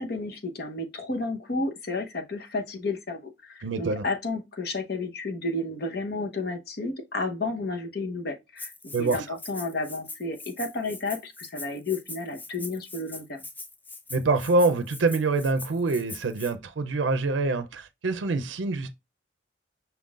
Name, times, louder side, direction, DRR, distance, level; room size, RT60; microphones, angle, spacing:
voice 1, 0.0-8.7 9.0-13.4, left 2 dB, 55° left, 0.9 m, -32 dB
voice 2, 3.6-4.0 8.9-9.2 14.1-18.9, right 3 dB, 85° right, 0.5 m, -25 dB
Rattle (instrument), 8.6-16.5, left 3 dB, 10° left, 0.4 m, -42 dB
5.7 x 3.7 x 2.4 m
head